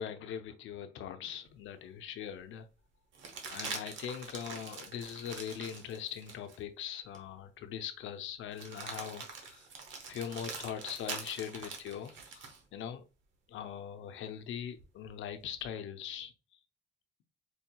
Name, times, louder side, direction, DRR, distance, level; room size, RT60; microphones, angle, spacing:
voice 1, 0.0-2.7 3.5-9.7 10.1-13.0 13.5-16.3, left 9 dB, 80° left, 0.6 m, -41 dB
sound 1, 1.6-1.7 3.1-6.6 7.1-7.3 8.5-12.6 14.8-15.7, right 5 dB, 70° right, 1.0 m, -44 dB
4.6 x 2.8 x 2.2 m
cardioid pair, 90°, 20 cm